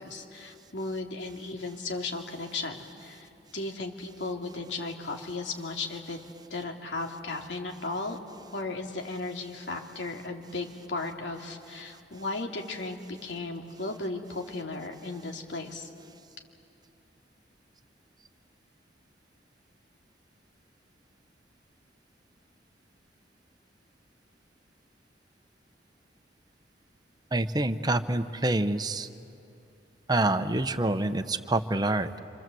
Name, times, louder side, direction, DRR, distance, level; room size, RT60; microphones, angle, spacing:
voice 1, 0.0-6.2 6.5-8.2 8.5-15.9, left 3 dB, 80° left, 2 dB, 2.7 m, -35 dB
voice 2, 27.3-29.1 30.1-32.2, right 2 dB, 25° right, 9 dB, 0.9 m, -27 dB
27.5 x 26.5 x 7.8 m, 2.8 s
head